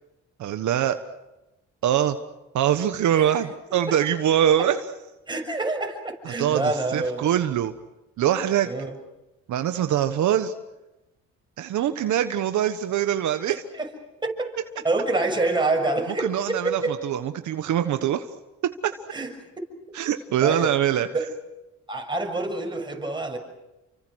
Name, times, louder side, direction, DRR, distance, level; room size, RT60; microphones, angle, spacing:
voice 1, 0.4-1.0 1.8-2.2 2.5-4.8 6.2-7.7 8.2-8.7 9.5-10.5 11.6-13.6 16.2-18.2 18.6-18.9 19.9-21.1, right 10 dB, 75° right, 9 dB, 1.3 m, -23 dB
voice 2, 5.3-7.4 8.6-8.9 13.8-13.9 14.2-14.6 14.8-17.0 19.1-19.3 20.4-20.7 21.1-21.3 21.9-23.4, right 2 dB, 15° right, 2 dB, 6.7 m, -27 dB
30.0 x 25.0 x 6.4 m, 0.98 s
cardioid pair, 90°, 30 cm